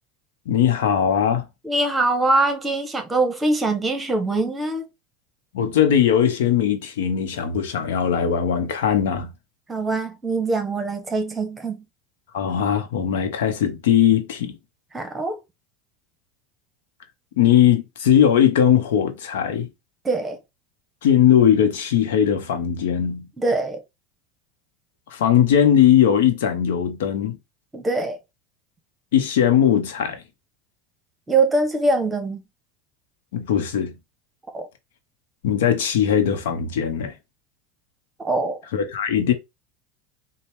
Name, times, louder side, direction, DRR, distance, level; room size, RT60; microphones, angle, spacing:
voice 1, 0.5-1.4 5.5-9.3 12.3-14.6 17.4-19.7 21.0-23.3 25.1-27.4 29.1-30.2 33.3-33.9 35.4-37.1 38.7-39.3, left 9 dB, 85° left, 0.7 m, -19 dB
voice 2, 1.6-4.9 9.7-11.8 14.9-15.4 20.0-20.4 23.4-23.8 27.7-28.2 31.3-32.4 34.5-34.7 38.2-38.6, right 2 dB, 15° right, 0.9 m, -23 dB
4.0 x 2.1 x 3.4 m
supercardioid pair, 110°, 0 cm